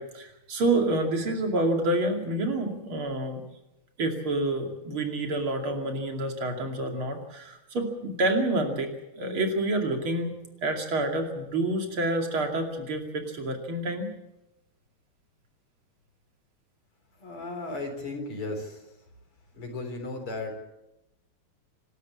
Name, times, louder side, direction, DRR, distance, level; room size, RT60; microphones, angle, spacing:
voice 1, 0.0-3.4 4.0-10.3 10.6-14.1, right 2 dB, 70° right, 4 dB, 3.5 m, -28 dB
voice 2, 17.2-18.8 19.5-20.6, left 2 dB, 80° left, 4 dB, 4.8 m, -35 dB
27.0 x 12.5 x 8.6 m, 0.93 s
omnidirectional pair, 2.4 m